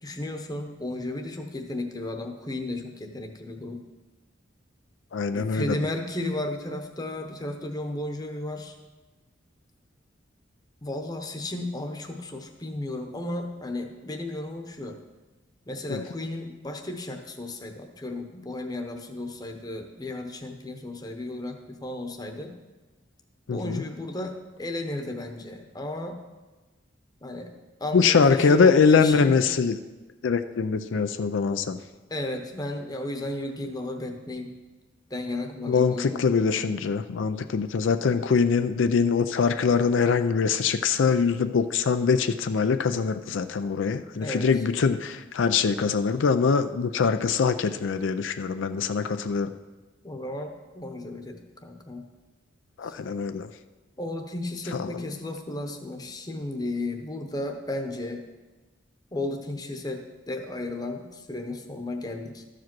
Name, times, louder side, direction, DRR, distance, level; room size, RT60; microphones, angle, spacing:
voice 1, 0.0-3.8 5.3-8.8 10.8-15.0 15.7-22.5 23.5-26.2 27.2-27.5 27.8-29.4 32.1-34.5 35.1-36.2 44.2-44.5 50.0-52.0 52.8-52.9 54.0-58.2 59.1-62.4, left 1 dB, 20° left, 4 dB, 0.8 m, -34 dB
voice 2, 5.1-5.8 15.9-16.0 23.5-23.8 27.9-29.8 30.2-31.8 35.7-49.5 52.8-53.5 54.8-54.9, left 5 dB, 85° left, 9 dB, 0.4 m, -23 dB
13.0 x 5.0 x 6.0 m, 1.2 s
head